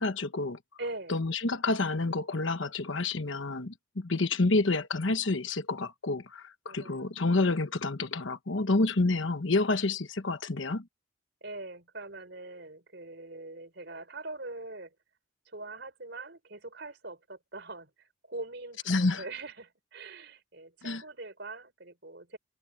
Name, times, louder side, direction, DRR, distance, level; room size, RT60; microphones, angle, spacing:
voice 1, 0.0-0.6 1.1-10.9 18.9-19.2 20.8-21.0, left 3 dB, 75° left, 1.2 m, -29 dB
voice 2, 0.8-1.2 6.7-7.2 11.4-14.9 15.5-22.4, right 2 dB, 60° right, 4.8 m, -43 dB
head